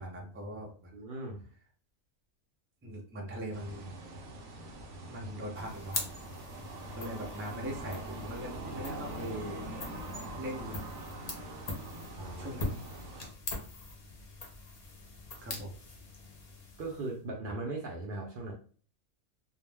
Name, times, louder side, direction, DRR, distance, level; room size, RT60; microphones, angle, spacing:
voice 1, 0.0-0.9 2.8-3.9 5.1-6.0 6.9-9.7 10.3-10.8 12.4-12.9 15.4-15.7, equal, 20° right, -2 dB, 0.3 m, -40 dB
voice 2, 0.9-1.4 12.1-12.5 16.8-18.5, right 2 dB, 60° right, 0 dB, 0.6 m, -38 dB
sound 1, 3.5-13.3, right 2 dB, 75° right, 0.9 m, -43 dB
sound 2, 5.5-17.2, left 3 dB, 45° left, 0.5 m, -43 dB
2.4 x 2.0 x 3.3 m, 0.42 s
omnidirectional pair, 1.3 m